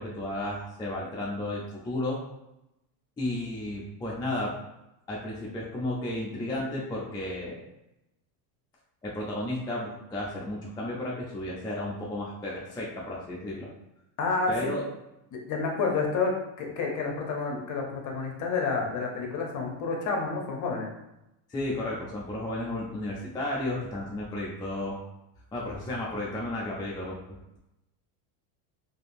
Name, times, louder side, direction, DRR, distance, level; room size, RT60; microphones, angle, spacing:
voice 1, 0.0-2.2 3.2-4.5 5.1-7.6 9.0-13.7 14.5-14.8 21.5-25.0 25.5-27.2, left 1 dB, 10° left, -5 dB, 0.4 m, -33 dB
voice 2, 14.2-14.7 15.3-20.9, left 4 dB, 40° left, 1 dB, 0.8 m, -29 dB
2.7 x 2.6 x 2.5 m, 0.88 s
supercardioid pair, 105°, 46 cm